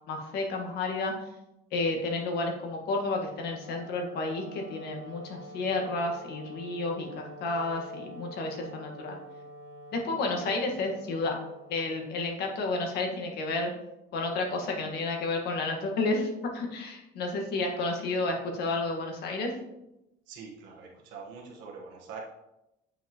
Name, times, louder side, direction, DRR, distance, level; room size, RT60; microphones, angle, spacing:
voice 1, 0.1-1.1 1.7-9.2 9.9-11.4 11.7-13.7 14.1-19.5, left 2 dB, 65° left, 2 dB, 1.6 m, -31 dB
Wind instrument woodwind instrument, 3.2-12.5, right 1 dB, 90° left, 2.7 m, -48 dB
voice 2, 20.3-22.2, right 5 dB, 85° right, -1 dB, 1.3 m, -44 dB
8.2 x 5.5 x 3.0 m, 0.89 s
cardioid pair, 155°, 18 cm